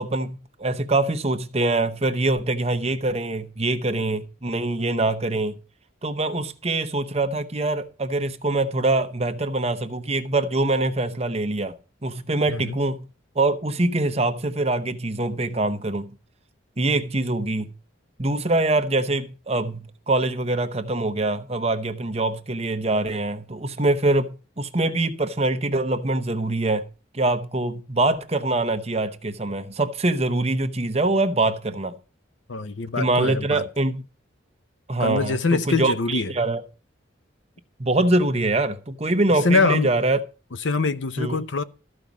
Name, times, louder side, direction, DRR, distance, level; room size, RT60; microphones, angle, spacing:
voice 1, 0.0-5.6 6.0-11.7 12.0-13.0 13.4-16.1 16.8-17.7 18.2-26.8 27.1-32.0 33.0-34.0 34.9-36.6 37.8-40.2 41.2-41.4, right 2 dB, 30° right, 0.9 m, -24 dB
voice 2, 12.5-12.8 32.5-33.6 35.0-36.3 39.3-39.9 40.6-41.6, left 3 dB, 70° left, 0.7 m, -23 dB
13.5 x 5.2 x 7.2 m
head